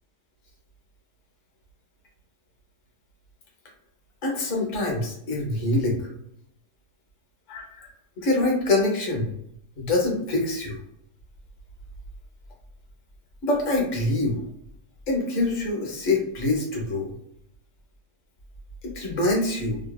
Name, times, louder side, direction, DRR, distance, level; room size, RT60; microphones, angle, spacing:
voice 1, 4.2-6.1 7.5-7.9 8.2-9.3 9.8-10.8 13.4-14.4 15.1-17.1 18.8-19.8, left 2 dB, 50° left, -1 dB, 0.5 m, -25 dB
2.7 x 2.2 x 2.2 m, 0.75 s
omnidirectional pair, 1.7 m